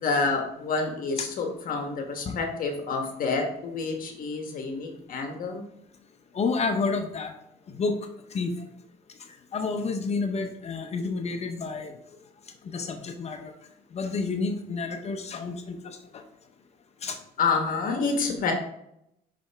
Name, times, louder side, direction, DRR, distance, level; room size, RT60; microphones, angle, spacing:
voice 1, 0.0-5.7 17.4-18.5, left 4 dB, 55° left, 3 dB, 1.2 m, -28 dB
voice 2, 6.3-7.3 7.7-8.0 8.3-8.5 9.5-11.9 12.7-13.5 13.9-15.8 17.0-17.2, left 4 dB, 40° left, 5 dB, 0.6 m, -29 dB
5.7 x 5.1 x 3.3 m, 0.79 s
cardioid pair, 110°, 17 cm